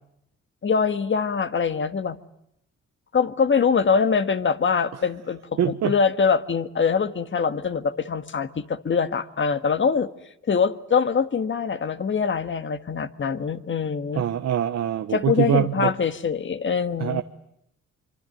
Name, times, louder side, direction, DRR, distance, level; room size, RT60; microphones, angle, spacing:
voice 1, 0.6-2.2 3.1-10.1 10.5-14.2 15.1-17.2, left 6 dB, 40° left, 11 dB, 1.7 m, -23 dB
voice 2, 5.6-5.9 14.1-15.9 17.0-17.2, right 10 dB, 60° right, 8 dB, 1.1 m, -24 dB
25.5 x 24.5 x 9.1 m, 0.77 s
cardioid pair, 90°, 30 cm